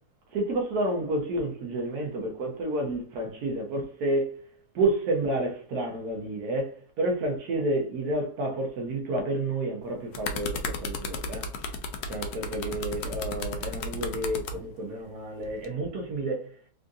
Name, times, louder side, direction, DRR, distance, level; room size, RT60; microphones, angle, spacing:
voice 1, 0.3-11.5 12.1-16.5, right 1 dB, 75° right, 1.2 m, -30 dB
sound 1, 9.8-14.6 15.4-15.7, left 4 dB, 80° left, 1.1 m, -33 dB
3.6 x 2.5 x 2.3 m
omnidirectional pair, 1.7 m